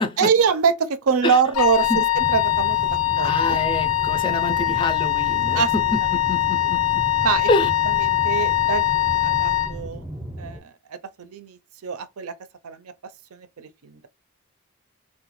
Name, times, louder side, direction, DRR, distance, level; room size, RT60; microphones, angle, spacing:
voice 1, 0.2-2.8 3.2-3.6 5.5-5.7 7.2-7.5 7.9-10.0 10.4-12.3 12.6-12.8 13.3-14.1, right 6 dB, 75° right, 0.5 m, -24 dB
Wind instrument woodwind instrument, 1.5-9.7, left 15 dB, 90° left, 0.5 m, -22 dB
sound 1, 2.1-10.6, right 1 dB, 15° right, 0.6 m, -35 dB
voice 2, 3.2-7.1 7.5-7.7, left 2 dB, 20° left, 0.3 m, -26 dB
3.6 x 2.2 x 3.0 m
head